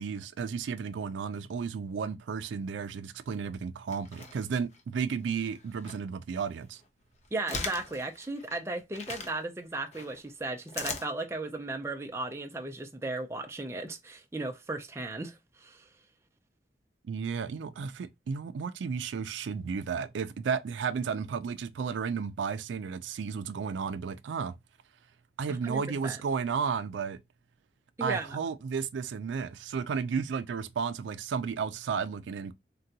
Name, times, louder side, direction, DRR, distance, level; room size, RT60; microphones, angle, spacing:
voice 1, 0.0-6.8 17.1-24.5 25.4-27.2 28.0-32.5, right 6 dB, 90° right, 0.4 m, -33 dB
sound 1, 3.9-4.8 5.4-6.0 6.5-9.3 9.9-11.1, left 4 dB, 35° left, 0.5 m, -39 dB
voice 2, 7.3-15.9 25.5-26.2 28.0-28.4, right 2 dB, 15° right, 0.4 m, -36 dB
3.7 x 2.2 x 2.7 m
head